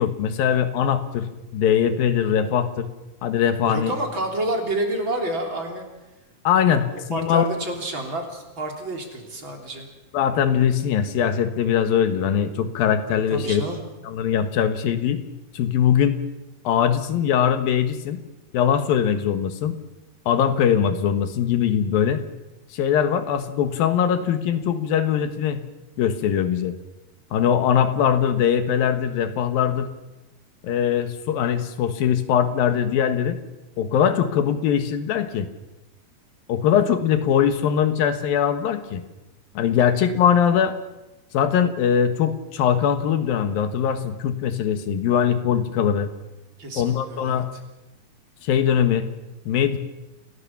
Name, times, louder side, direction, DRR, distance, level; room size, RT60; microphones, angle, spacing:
voice 1, 0.0-2.9 3.2-3.9 6.4-7.5 10.1-13.6 14.1-15.2 15.5-16.2 16.6-18.2 18.5-19.8 20.3-22.2 22.7-25.6 26.0-26.7 27.3-29.9 30.6-33.4 33.8-35.5 36.5-39.0 39.5-40.8 41.3-46.1 46.8-47.5 48.4-49.1 49.5-49.8, left 8 dB, 90° left, 9 dB, 3.3 m, -21 dB
voice 2, 3.6-5.9 6.6-6.8 7.1-9.9 13.3-13.8 46.6-47.4, right 1 dB, 35° right, 2 dB, 3.9 m, -29 dB
29.0 x 17.0 x 7.3 m, 1.0 s
omnidirectional pair, 4.0 m